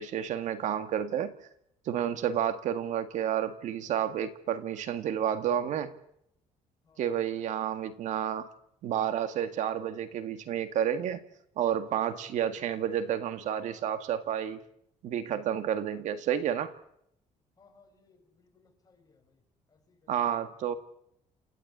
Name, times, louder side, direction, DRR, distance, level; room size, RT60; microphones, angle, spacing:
voice 1, 0.0-1.3 1.9-6.0 7.0-8.5 8.8-11.2 11.6-14.6 15.0-16.7 20.1-20.7, right 9 dB, 75° right, 10 dB, 1.9 m, -30 dB
voice 2, 17.6-19.4 19.7-20.5, left 4 dB, 30° left, 3 dB, 6.2 m, -64 dB
28.5 x 15.5 x 8.6 m, 0.73 s
cardioid pair, 125°, 13 cm